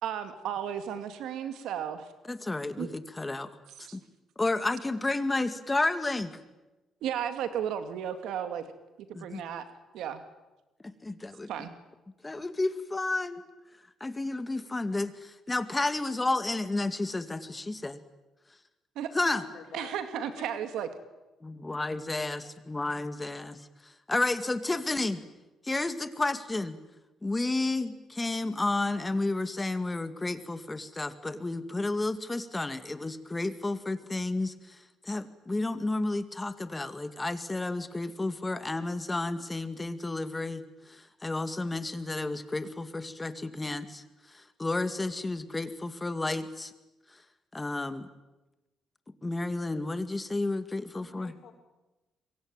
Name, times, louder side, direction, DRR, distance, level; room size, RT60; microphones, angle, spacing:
voice 1, 0.0-2.1 2.8-3.0 3.8-4.0 7.0-8.6 9.2-9.6 9.9-10.2 11.5-11.7 19.0-19.1 19.7-20.9, right 9 dB, 85° right, 2.4 m, -34 dB
voice 2, 2.3-3.5 3.8-4.0 4.4-6.4 9.1-9.4 11.0-11.5 12.2-13.5 14.0-18.0 19.1-19.4 21.4-25.2 25.6-26.8 27.2-46.7 47.1-47.2 47.5-48.1 49.2-51.3, left 2 dB, 20° left, 2.3 m, -31 dB
voice 3, 19.3-20.4 50.9-51.5, left 7 dB, 75° left, 6.5 m, -48 dB
26.5 x 23.5 x 9.1 m
cardioid pair, 90°, 0 cm